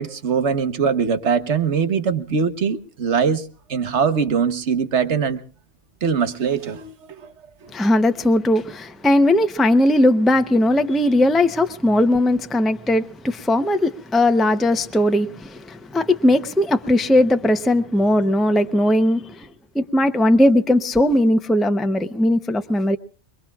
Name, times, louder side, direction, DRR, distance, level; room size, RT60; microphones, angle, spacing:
voice 1, 0.0-3.4 3.7-5.4 6.0-7.3 7.6-7.7, right 6 dB, 90° right, 1.4 m, -22 dB
voice 2, 7.7-19.5 19.7-23.0, left 1 dB, ahead, 0.7 m, -18 dB
27.5 x 21.5 x 2.4 m
omnidirectional pair, 1.1 m